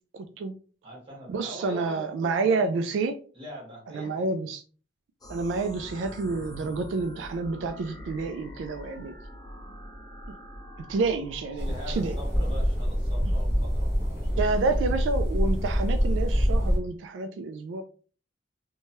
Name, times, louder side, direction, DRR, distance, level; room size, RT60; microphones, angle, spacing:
voice 1, 0.1-0.5 1.3-3.2 3.9-4.6 5.3-9.1 10.9-12.1 14.4-17.8, right 3 dB, 85° right, 0.3 m, -29 dB
voice 2, 0.8-2.8 3.3-4.3 11.6-14.5, equal, 30° right, 1.2 m, -43 dB
sound 1, 5.2-12.6, equal, 20° left, 0.5 m, -44 dB
sound 2, 11.6-16.8, equal, 15° right, 0.8 m, -25 dB
3.0 x 2.2 x 2.8 m
head